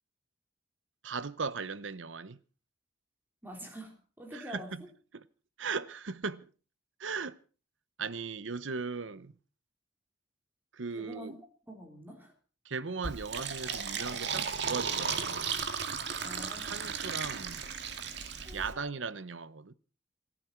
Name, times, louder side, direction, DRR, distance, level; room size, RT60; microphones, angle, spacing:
voice 1, 1.0-2.4 4.3-4.8 5.1-5.3 5.6-6.5 7.0-7.4 8.0-9.3 10.7-11.3 12.6-15.6 16.6-17.6 18.5-19.7, right 4 dB, 85° right, 0.9 m, -38 dB
voice 2, 3.4-4.9 10.9-12.3 16.2-17.0 18.4-18.8, equal, 10° right, 3.4 m, -46 dB
Fill (with liquid), 13.0-18.7, right 6 dB, 60° right, 2.0 m, -35 dB
27.5 x 11.5 x 4.5 m
head